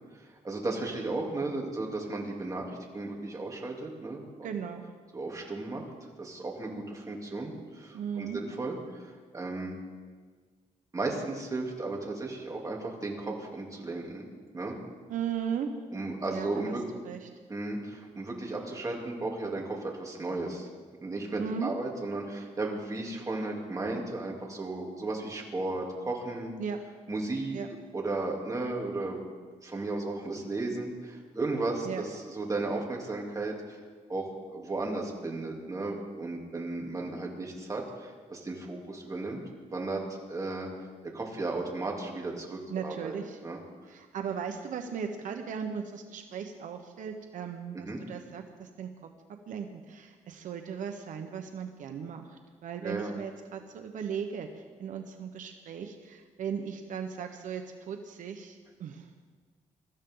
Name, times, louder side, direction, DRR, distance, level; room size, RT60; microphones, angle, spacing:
voice 1, 0.1-2.6 2.9-4.5 5.1-5.8 6.2-9.8 10.9-14.3 14.5-14.8 15.9-16.8 17.5-20.7 21.0-26.5 27.1-27.6 27.9-29.2 29.6-33.8 34.1-39.4 39.7-40.7 41.1-43.1 43.4-43.6 47.7-48.0 52.8-53.1, right 2 dB, 25° right, -1 dB, 3.2 m, -35 dB
voice 2, 4.4-4.8 7.9-8.4 15.1-15.7 16.3-16.7 17.0-17.3 21.4-21.7 26.6-26.8 27.5-27.7 31.8-32.0 42.7-43.4 43.9-48.9 49.5-59.1, right 7 dB, 85° right, 5 dB, 1.1 m, -37 dB
23.0 x 14.0 x 3.9 m, 1.5 s
cardioid pair, 115°, 13 cm